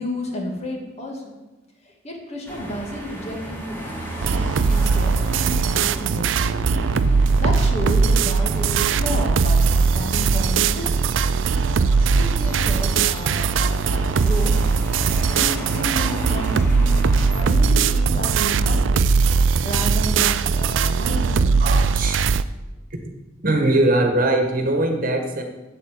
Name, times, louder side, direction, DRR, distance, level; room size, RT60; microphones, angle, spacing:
voice 1, 0.0-1.4 2.0-4.0 4.7-7.0 7.4-11.1 12.2-14.6 15.1-17.0 17.3-19.2 19.6-21.6, left 1 dB, 35° left, 1 dB, 2.1 m, -32 dB
sound 1, 2.5-17.5, equal, 10° left, 2.7 m, -35 dB
sound 2, 4.2-22.4, right 5 dB, 85° right, 0.4 m, -19 dB
voice 2, 21.6-22.2 23.4-25.4, right 1 dB, 45° right, 4 dB, 1.5 m, -21 dB
8.5 x 8.0 x 7.5 m, 1.1 s
head